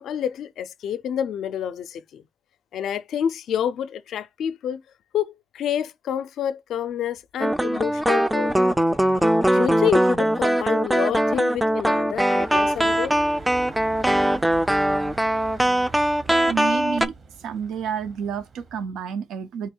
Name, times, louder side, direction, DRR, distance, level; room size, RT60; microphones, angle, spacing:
voice 1, 0.0-2.2 2.7-4.8 5.1-8.6 9.5-13.2, left 9 dB, 70° left, 0.4 m, -28 dB
sound 1, 7.4-17.1, right 1 dB, 5° right, 0.3 m, -21 dB
sound 2, 12.4-18.8, right 4 dB, 40° right, 0.8 m, -43 dB
voice 2, 16.4-17.1 17.4-19.7, right 7 dB, 80° right, 0.5 m, -29 dB
3.8 x 2.2 x 4.3 m
cardioid pair, 90°, 0 cm